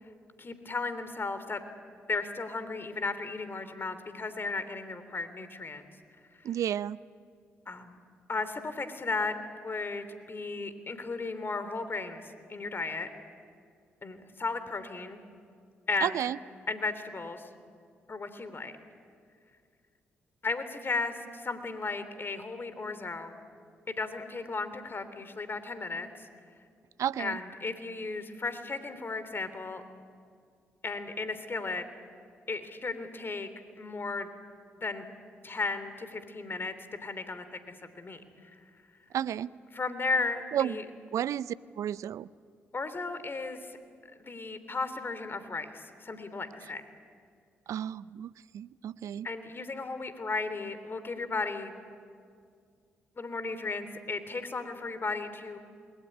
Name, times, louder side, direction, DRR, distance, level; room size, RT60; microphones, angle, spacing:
voice 1, 0.4-1.6 2.1-5.8 7.7-8.0 8.3-9.3 9.6-13.1 14.0-15.2 15.9-16.2 16.7-17.5 18.1-18.7 20.4-23.3 23.9-26.3 27.2-29.8 30.8-31.8 32.5-33.5 33.8-34.3 34.8-35.0 35.4-36.7 37.0-37.4 37.8-38.5 39.7-40.8 42.7-43.8 44.2-46.8 49.2-51.7 53.2-55.6, left 3 dB, 40° left, 11 dB, 3.2 m, -35 dB
voice 2, 6.4-7.0 16.0-16.4 27.0-27.4 39.1-39.5 40.5-40.8 41.1-42.3 47.7-49.3, right 10 dB, 65° right, 19 dB, 0.6 m, -32 dB
28.0 x 21.0 x 9.9 m, 2.2 s
hypercardioid pair, 40°, 6 cm